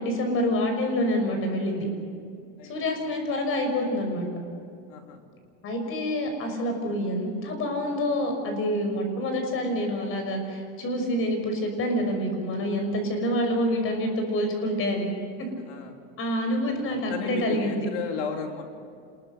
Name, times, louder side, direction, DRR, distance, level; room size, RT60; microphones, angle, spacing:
voice 1, 0.0-1.9 2.6-4.3 5.6-15.2 16.2-17.9, equal, 35° left, 5 dB, 6.0 m, -27 dB
voice 2, 4.9-5.2 15.7-16.0 16.8-18.6, left 6 dB, 75° left, 3 dB, 3.5 m, -34 dB
27.0 x 21.5 x 6.7 m, 2.3 s
supercardioid pair, 150°, 36 cm